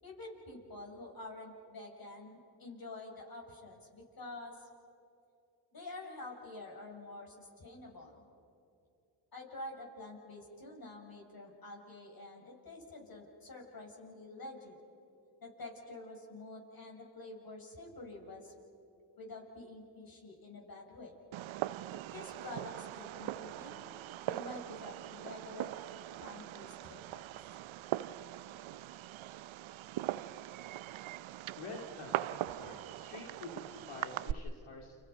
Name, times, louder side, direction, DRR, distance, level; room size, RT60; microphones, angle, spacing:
voice 1, 0.0-4.7 5.7-8.2 9.3-14.7 15.4-18.5 19.2-21.1 22.1-23.9 24.3-25.7 26.2-27.2, left 2 dB, 45° left, 0 dB, 7.3 m, -48 dB
Fireworks, 21.3-34.3, right 14 dB, 70° right, 0.7 m, -41 dB
voice 2, 31.6-35.0, left 3 dB, 85° left, 1 dB, 2.7 m, -48 dB
29.5 x 29.0 x 5.4 m, 2.6 s
cardioid pair, 70°, 49 cm